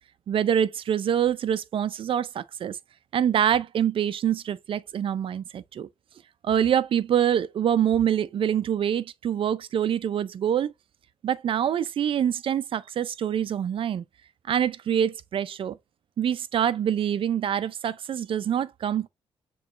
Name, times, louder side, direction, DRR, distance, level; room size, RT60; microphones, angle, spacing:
voice 1, 0.3-2.8 3.1-5.9 6.4-10.7 11.2-14.0 14.5-15.8 16.2-19.1, right 9 dB, 55° right, 0.5 m, -25 dB
6.7 x 3.1 x 2.5 m
cardioid pair, 100°, 10 cm